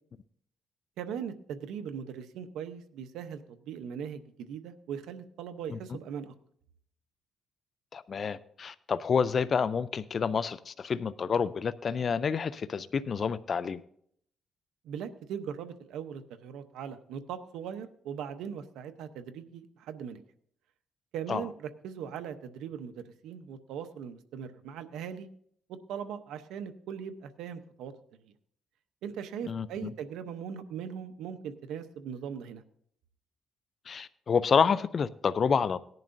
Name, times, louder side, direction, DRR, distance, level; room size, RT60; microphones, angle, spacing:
voice 1, 1.0-6.3 14.8-20.2 21.1-25.3 25.7-27.9 28.2-28.3 29.0-32.6, right 8 dB, 85° right, 0.8 m, -40 dB
voice 2, 7.9-13.8 21.3-21.4 29.5-29.9 33.9-35.8, left 6 dB, 45° left, 0.4 m, -28 dB
18.0 x 10.5 x 2.6 m
cardioid pair, 90°, 0 cm